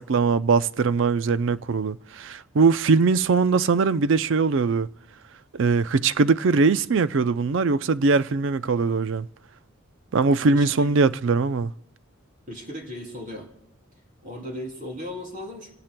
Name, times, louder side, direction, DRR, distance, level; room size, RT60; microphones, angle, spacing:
voice 1, 0.0-4.9 5.5-9.3 10.1-11.7, right 4 dB, 65° right, 0.4 m, -21 dB
voice 2, 10.5-11.0 12.5-13.5 14.2-15.8, left 1 dB, 40° right, 3.0 m, -36 dB
27.0 x 18.0 x 2.2 m
head